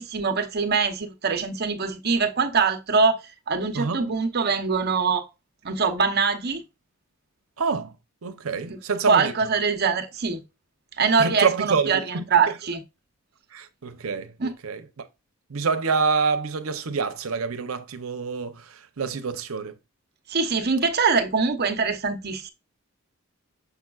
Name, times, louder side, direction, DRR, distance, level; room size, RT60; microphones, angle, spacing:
voice 1, 0.0-3.2 3.5-5.3 5.6-6.6 8.7-8.8 9.0-10.4 11.0-12.8 14.4-14.5 20.3-22.5, right 5 dB, 50° right, 0.9 m, -23 dB
voice 2, 3.7-4.1 7.6-7.9 8.2-9.3 11.2-12.2 13.5-14.8 15.5-19.7, right 5 dB, 80° right, 0.8 m, -27 dB
6.9 x 5.8 x 2.4 m
head